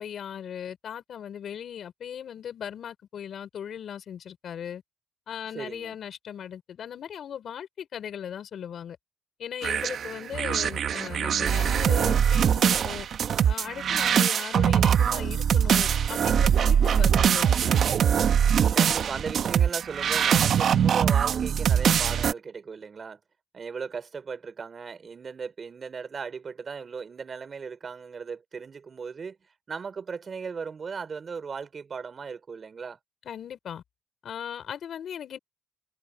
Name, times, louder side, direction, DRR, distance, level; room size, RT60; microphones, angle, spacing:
voice 1, 0.0-4.8 5.3-9.0 9.4-13.1 13.5-17.8 33.2-33.8 34.2-35.4, left 9 dB, 65° left, 5.2 m, -38 dB
voice 2, 5.5-6.0 18.7-23.2 23.5-29.4 29.7-33.0, right 5 dB, 40° right, 5.0 m, -37 dB
sound 1, 9.6-22.3, right 8 dB, 60° right, 1.1 m, -23 dB
cardioid pair, 90°, 0 cm